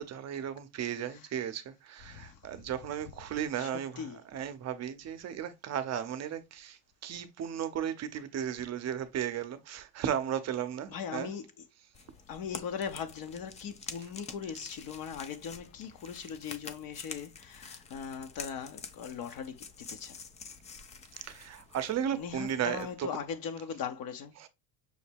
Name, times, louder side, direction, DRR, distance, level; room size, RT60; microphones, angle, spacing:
voice 1, 0.0-11.3 21.2-23.1 24.4-24.5, right 9 dB, 35° right, 0.7 m, -35 dB
voice 2, 2.1-2.4 3.6-4.2 10.9-11.5 12.3-20.2 22.1-24.3, left 7 dB, 45° left, 0.7 m, -39 dB
sound 1, 11.9-22.9, left 5 dB, 15° left, 0.3 m, -48 dB
6.3 x 2.1 x 3.4 m
hypercardioid pair, 90°, 48 cm